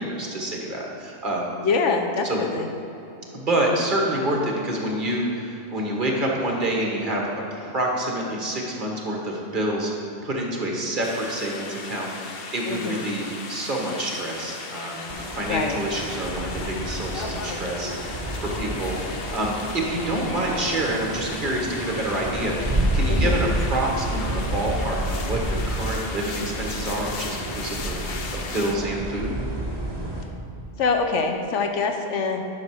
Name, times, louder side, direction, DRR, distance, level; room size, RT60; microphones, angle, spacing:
voice 1, 0.0-1.5 2.2-2.4 3.3-9.9 10.2-29.3, right 1 dB, 45° right, -1 dB, 1.4 m, -27 dB
voice 2, 1.6-2.7 12.7-13.0 15.5-15.8 23.1-23.4 30.8-32.4, left 4 dB, 80° left, 4 dB, 1.1 m, -24 dB
sound 1, 11.0-28.7, left 4 dB, 60° left, 0.9 m, -37 dB
sound 2, 15.1-30.2, right 1 dB, 20° right, 1.0 m, -29 dB
10.5 x 5.9 x 4.7 m, 3.0 s
omnidirectional pair, 1.2 m